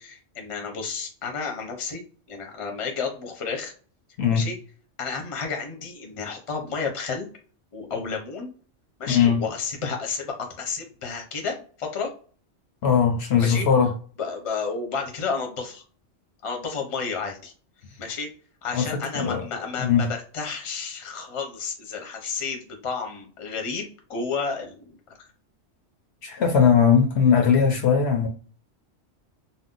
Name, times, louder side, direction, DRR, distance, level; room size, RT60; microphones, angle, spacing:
voice 1, 0.0-2.0 2.3-3.7 4.3-4.6 5.0-7.3 7.7-8.5 9.0-12.1 13.4-13.7 14.2-15.8 16.4-17.5 18.0-18.3 18.6-25.3, left 5 dB, 35° left, 0.6 m, -31 dB
voice 2, 9.1-9.4 12.8-13.9 18.7-19.4 19.8-20.1 26.2-28.3, left 7 dB, 65° left, 0.8 m, -20 dB
2.6 x 2.0 x 3.7 m
omnidirectional pair, 1.3 m